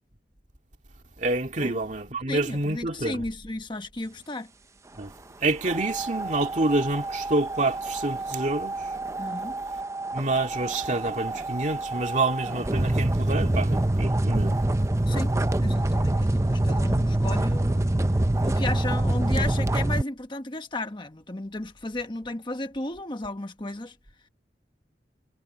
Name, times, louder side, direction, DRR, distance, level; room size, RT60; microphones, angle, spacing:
voice 1, 1.2-3.2 5.0-5.1 5.4-8.8 10.1-14.6, right 2 dB, 45° right, 2.4 m, -27 dB
voice 2, 2.3-4.5 9.2-9.6 13.4-13.6 15.1-17.9 18.4-24.0, left 2 dB, 25° left, 1.2 m, -34 dB
sound 1, 5.6-20.0, right 1 dB, 15° right, 0.6 m, -26 dB
head